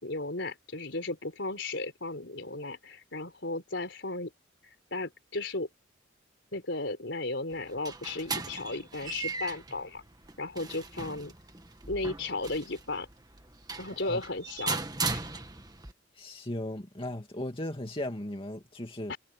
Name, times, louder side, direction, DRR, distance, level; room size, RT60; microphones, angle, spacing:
voice 1, 0.0-4.3 4.9-5.7 6.5-10.0 10.4-11.3 11.9-13.1 13.8-14.8 15.1-15.2 19.1-19.2, left 2 dB, 65° left, 4.7 m, -35 dB
sound 1, 7.5-15.9, right 4 dB, 20° right, 1.8 m, -38 dB
voice 2, 16.2-19.2, left 1 dB, 30° left, 2.3 m, -37 dB
head